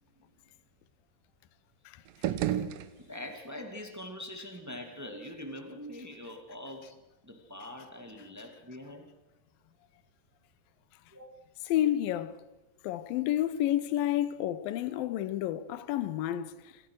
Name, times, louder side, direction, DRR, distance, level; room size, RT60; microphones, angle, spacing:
sound 1, 2.1-3.5, right 12 dB, 70° right, 2.4 m, -33 dB
voice 1, 3.0-9.1 11.1-11.3, left 1 dB, 10° right, 1.0 m, -43 dB
voice 2, 11.7-12.4 12.8-16.5, left 12 dB, 70° left, 2.5 m, -30 dB
26.5 x 15.5 x 6.4 m
omnidirectional pair, 4.7 m